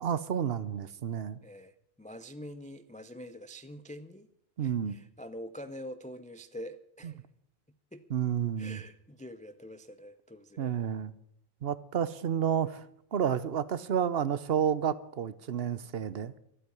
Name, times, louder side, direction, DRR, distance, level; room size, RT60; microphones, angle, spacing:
voice 1, 0.0-1.4 4.6-5.0 7.0-7.1 8.1-8.8 10.6-11.1 11.6-12.9 13.1-16.3, right 8 dB, 70° right, 16 dB, 1.0 m, -30 dB
voice 2, 1.4-4.3 4.6-7.2 7.9-8.0 8.6-10.7, equal, 10° left, 10 dB, 0.5 m, -45 dB
13.0 x 8.4 x 9.8 m, 0.74 s
omnidirectional pair, 1.1 m